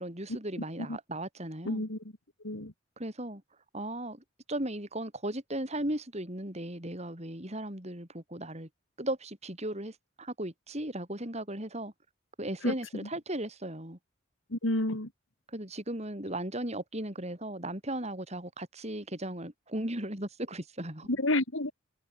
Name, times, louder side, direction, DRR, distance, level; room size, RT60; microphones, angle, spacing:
voice 1, 0.0-1.8 3.0-3.4 3.7-4.2 4.5-8.7 9.0-11.9 12.4-14.0 15.5-21.1, right 1 dB, 35° right, 5.6 m, -36 dB
voice 2, 1.6-2.0 2.4-2.7 12.6-12.7 14.5-15.1 21.1-21.7, left 1 dB, 75° left, 3.0 m, -29 dB
head